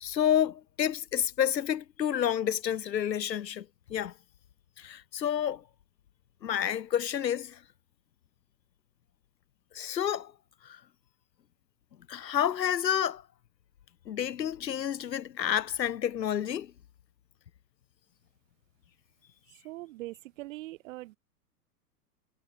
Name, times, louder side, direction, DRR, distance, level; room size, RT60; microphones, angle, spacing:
voice 1, 0.0-4.1 4.8-5.6 6.4-7.6 9.7-10.3 10.6-10.8 12.1-13.2 14.1-16.7, left 9 dB, 85° left, 0.7 m, -29 dB
voice 2, 19.6-21.2, right 18 dB, 50° right, 4.8 m, -42 dB
figure-of-eight pair, 105°, 49 cm